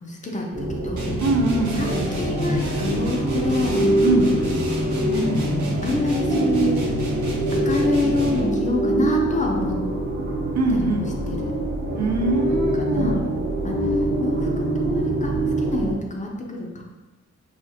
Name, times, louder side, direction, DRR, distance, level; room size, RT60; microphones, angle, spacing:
voice 1, 0.0-1.2 1.7-3.9 5.1-6.9 7.5-9.8 10.7-11.6 12.8-13.2 13.6-16.8, left 2 dB, 25° left, 0 dB, 0.5 m, -27 dB
sound 1, 0.5-15.9, right 1 dB, 35° right, 0.8 m, -24 dB
sound 2, 1.0-8.6, right 1 dB, 85° right, 1.0 m, -31 dB
voice 2, 1.2-2.1 4.0-4.4 10.6-11.1 11.9-13.3, right 2 dB, 65° right, 1 dB, 0.7 m, -22 dB
4.9 x 3.0 x 2.8 m, 1.2 s
wide cardioid pair, 155°, 29 cm